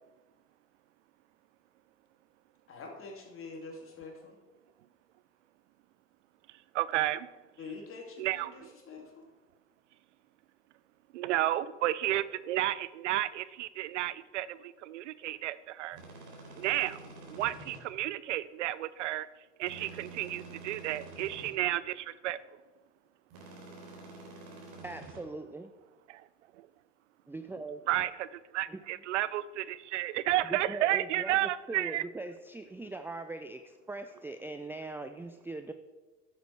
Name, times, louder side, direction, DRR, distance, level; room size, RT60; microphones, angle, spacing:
voice 1, 2.7-4.4 7.6-9.2, left 3 dB, 35° left, 1 dB, 2.9 m, -45 dB
voice 2, 6.7-7.3 8.2-8.7 11.1-16.0 16.6-17.0 17.3-19.3 19.6-22.4 26.1-26.2 27.9-32.0, right 14 dB, 80° right, 18 dB, 0.5 m, -32 dB
sound 1, 15.9-17.8 19.6-21.5 23.3-25.2, right 3 dB, 60° right, 3.8 m, -48 dB
voice 3, 24.8-25.7 27.3-27.8 28.7-28.8 30.5-31.4 31.7-35.7, right 2 dB, 5° right, 9 dB, 0.4 m, -41 dB
11.0 x 8.2 x 4.8 m, 1.3 s
hypercardioid pair, 75°, 35 cm